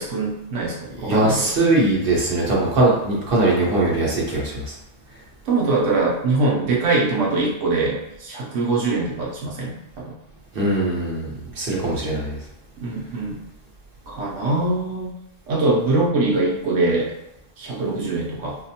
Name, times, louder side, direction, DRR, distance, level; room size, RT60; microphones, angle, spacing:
voice 1, 0.0-1.4 5.5-10.1 12.8-13.4 14.1-15.1 15.5-17.1 17.6-18.6, right 3 dB, 80° right, -4 dB, 1.1 m, -23 dB
voice 2, 1.0-4.7 10.5-12.4, right 2 dB, 50° right, -4 dB, 1.1 m, -21 dB
4.9 x 2.1 x 2.7 m, 0.90 s
omnidirectional pair, 1.3 m